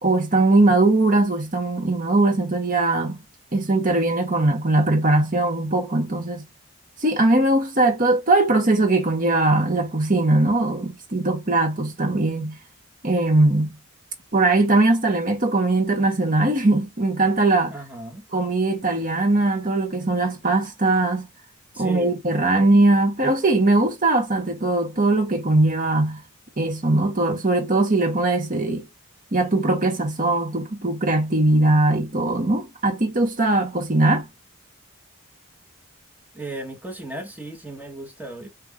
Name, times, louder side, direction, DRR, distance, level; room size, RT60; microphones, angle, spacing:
voice 1, 0.0-3.2 3.5-6.4 7.0-12.6 13.0-13.7 14.3-17.7 18.3-21.3 21.8-26.2 26.6-28.9 29.3-34.3, right 2 dB, 35° right, 1.0 m, -20 dB
voice 2, 17.7-18.3 21.7-22.2 36.3-38.5, right 2 dB, 5° right, 0.9 m, -35 dB
4.4 x 2.5 x 3.6 m
head